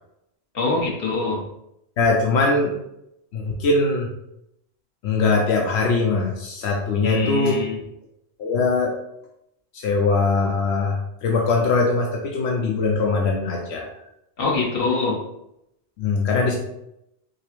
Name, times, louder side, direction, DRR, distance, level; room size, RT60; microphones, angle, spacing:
voice 1, 0.5-1.4 7.0-7.8 14.4-15.2, left 4 dB, 65° left, -2 dB, 1.2 m, -23 dB
voice 2, 2.0-2.7 3.3-4.1 5.0-7.6 8.4-8.9 9.7-13.9 16.0-16.6, left 3 dB, 85° left, 0 dB, 0.9 m, -21 dB
5.2 x 2.0 x 3.0 m, 0.81 s
omnidirectional pair, 1.1 m